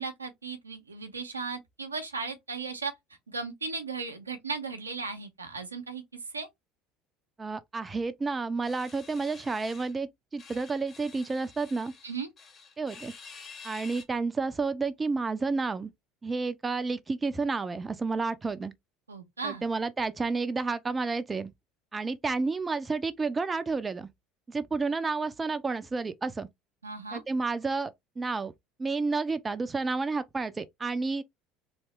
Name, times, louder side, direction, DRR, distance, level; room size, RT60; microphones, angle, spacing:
voice 1, 0.0-2.9 3.3-6.0 6.3-6.5 12.0-12.3 19.1-19.7 26.8-27.2, right 4 dB, 90° right, 0.7 m, -36 dB
voice 2, 7.4-11.9 12.8-13.1 13.6-15.9 16.2-18.7 19.4-21.5 21.9-24.1 24.5-26.5 27.1-28.5 28.8-31.2, right 4 dB, 20° right, 0.5 m, -30 dB
sound 1, 8.6-10.0 10.4-14.0, left 5 dB, 40° left, 1.4 m, -49 dB
3.3 x 2.7 x 3.2 m
figure-of-eight pair, 65°, 0 cm